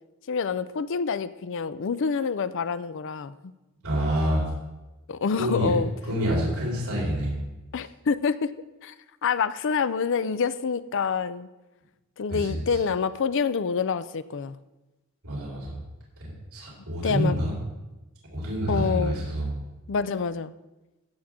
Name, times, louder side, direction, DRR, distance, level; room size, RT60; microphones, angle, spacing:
voice 1, 0.3-3.5 5.1-5.9 7.7-8.5 8.8-8.9 9.2-11.5 12.2-14.6 17.0-17.4 18.7-19.3 19.9-20.5, left 5 dB, 60° left, 15 dB, 0.4 m, -27 dB
voice 2, 3.8-4.5 5.4-5.7 6.1-7.4 12.3-12.8 15.2-15.8 16.2-17.5 18.3-19.5, equal, 80° right, -5 dB, 3.8 m, -27 dB
15.0 x 7.5 x 3.6 m, 1.1 s
head